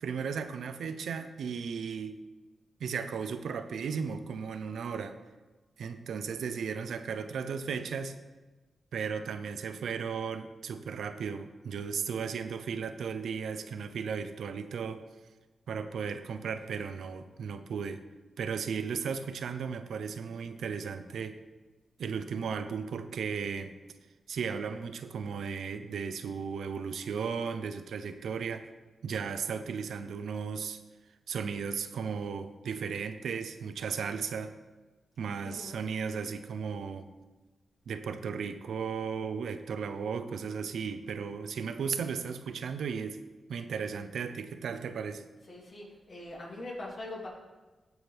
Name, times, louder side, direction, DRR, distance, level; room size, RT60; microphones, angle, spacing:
voice 1, 0.0-2.2 2.8-5.2 5.8-8.2 8.9-15.0 15.7-18.0 18.4-21.4 22.0-23.7 24.3-28.7 29.0-30.8 31.3-34.5 35.2-37.1 37.9-43.2 43.5-45.2, right 6 dB, 90° right, 9 dB, 0.6 m, -35 dB
voice 2, 35.4-35.8 45.4-47.3, left 2 dB, 55° left, -4 dB, 3.3 m, -43 dB
16.0 x 6.2 x 3.5 m, 1.2 s
cardioid pair, 80°, 0 cm